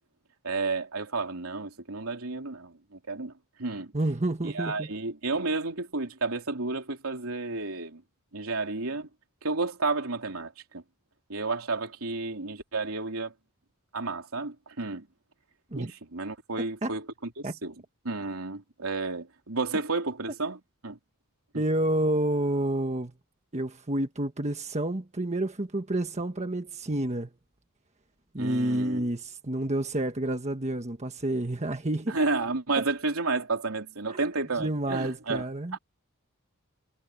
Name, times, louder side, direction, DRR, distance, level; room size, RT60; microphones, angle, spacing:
voice 1, 0.4-3.3 3.6-3.9 4.4-8.0 8.3-9.1 9.4-10.8 11.3-13.3 13.9-15.0 15.7-17.1 17.4-17.7 18.0-20.6 20.8-21.0 28.4-29.1 32.1-35.4 35.7-35.8, right 3 dB, 75° right, 3.3 m, -31 dB
voice 2, 3.9-4.9 15.7-15.9 16.8-16.9 17.4-17.5 21.5-23.1 23.5-27.3 28.3-32.1 34.1-34.2 34.6-35.8, right 1 dB, 35° right, 1.4 m, -29 dB
head